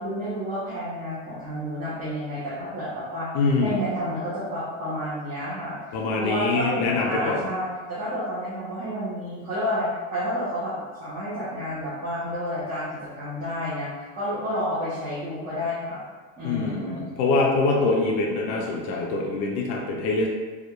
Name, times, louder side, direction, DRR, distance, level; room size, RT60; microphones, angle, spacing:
voice 1, 0.0-3.3 3.6-5.8 6.2-16.0 16.4-17.0, equal, 25° right, -10 dB, 0.5 m, -30 dB
voice 2, 3.3-3.8 5.9-7.5 16.4-20.3, left 3 dB, 75° left, -1 dB, 0.5 m, -24 dB
2.3 x 2.0 x 2.9 m, 1.4 s
cardioid pair, 175°, 33 cm